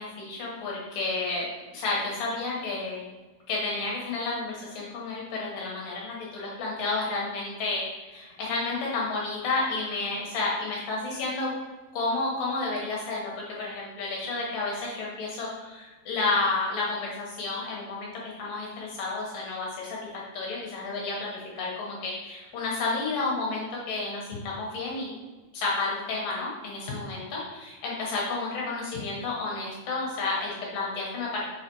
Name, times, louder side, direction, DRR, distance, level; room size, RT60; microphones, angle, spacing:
voice 1, 0.0-3.1 3.5-7.8 8.1-11.5 11.9-25.1 25.5-31.4, left 3 dB, 70° left, -4 dB, 2.4 m, -31 dB
6.0 x 4.0 x 4.5 m, 1.2 s
omnidirectional pair, 4.7 m